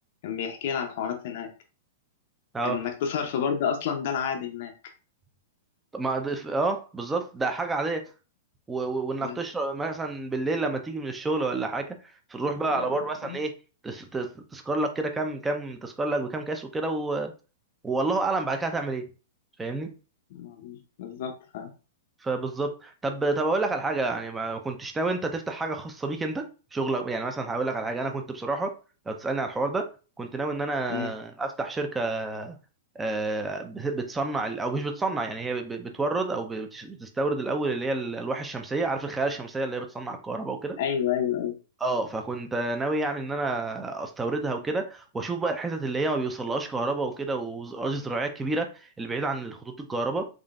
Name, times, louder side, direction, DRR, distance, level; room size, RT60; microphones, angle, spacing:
voice 1, 0.2-1.5 2.6-4.7 9.2-9.4 12.7-13.0 13.2-13.4 20.3-21.7 30.9-31.1 40.8-41.6, left 8 dB, 60° left, 0.6 m, -30 dB
voice 2, 5.9-8.0 8.7-12.0 12.3-13.5 13.8-17.3 17.8-19.1 19.6-19.9 22.2-26.4 26.7-28.7 29.1-29.9 30.2-32.6 33.0-40.8 41.8-50.3, right 3 dB, 10° right, 0.6 m, -29 dB
3.8 x 3.2 x 2.4 m
hypercardioid pair, 120°, 0 cm